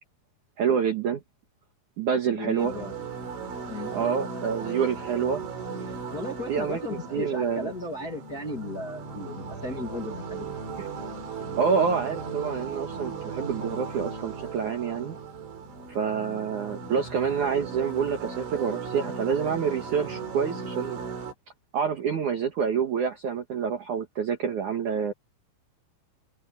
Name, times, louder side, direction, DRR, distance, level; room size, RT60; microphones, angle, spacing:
voice 1, 0.6-1.2 2.0-2.7 3.9-5.4 6.5-7.7 10.8-10.9 11.6-15.2 15.9-21.0 21.7-25.1, right 6 dB, 60° right, 2.2 m, -27 dB
voice 2, 2.3-2.9 3.7-3.9 5.8-10.6, left 2 dB, 30° left, 2.0 m, -36 dB
sound 1, 2.6-21.3, right 5 dB, 80° right, 7.2 m, -37 dB
omnidirectional pair, 5.3 m